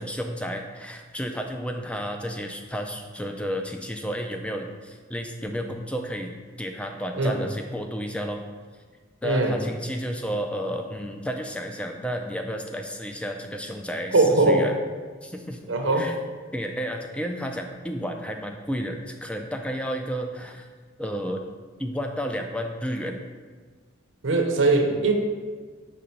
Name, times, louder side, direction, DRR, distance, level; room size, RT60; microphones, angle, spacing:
voice 1, 0.0-8.4 9.2-14.7 15.2-16.1 16.5-20.7 21.0-21.4 21.8-23.2, equal, 5° left, 4 dB, 0.4 m, -32 dB
voice 2, 9.2-9.6 14.1-14.7 15.7-16.1 24.2-25.1, right 2 dB, 70° right, 3 dB, 0.7 m, -20 dB
5.2 x 3.7 x 5.7 m, 1.5 s
head